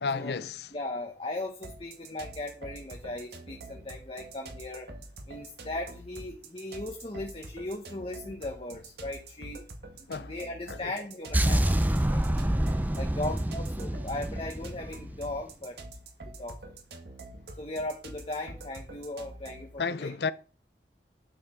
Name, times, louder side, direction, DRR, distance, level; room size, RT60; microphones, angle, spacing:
voice 1, 0.0-0.7 10.1-10.3 10.7-10.9 19.8-20.3, left 5 dB, 70° left, 0.6 m, -32 dB
voice 2, 0.7-4.9 5.3-9.6 10.0-11.7 12.1-12.2 13.0-15.8 16.4-16.7 17.6-20.1, left 2 dB, 30° left, 1.0 m, -38 dB
sound 1, 1.6-19.7, right 2 dB, 65° right, 1.8 m, -46 dB
sound 2, 11.3-15.4, right 1 dB, 10° right, 0.6 m, -27 dB
11.0 x 5.9 x 4.3 m
head